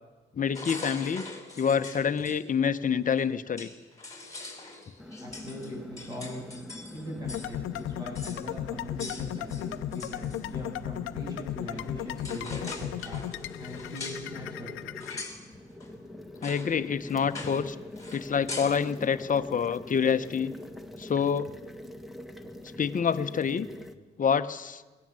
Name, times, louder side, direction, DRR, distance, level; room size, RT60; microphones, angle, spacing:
voice 1, 0.4-1.2 1.6-3.7 16.4-17.8 18.1-20.5 21.0-21.5 22.8-23.7 24.2-24.8, left 7 dB, 40° left, 11 dB, 1.0 m, -27 dB
sound 1, 0.5-2.4 3.2-3.3 3.6-7.5 7.7-7.8 8.1-8.4 9.0-10.5 11.7-11.9 12.2-14.3 15.0-15.4 15.8-15.9 16.4-16.7 17.0-17.7 18.0-18.8, left 3 dB, 15° left, 5.7 m, -42 dB
sound 2, 5.0-23.9, left 1 dB, ahead, 1.7 m, -44 dB
voice 2, 5.2-6.5 6.9-14.8, equal, 20° right, -2 dB, 7.9 m, -41 dB
sound 3, 7.2-15.2, left 13 dB, 85° left, 0.7 m, -36 dB
21.5 x 19.5 x 7.7 m, 1.3 s
cardioid pair, 90°, 20 cm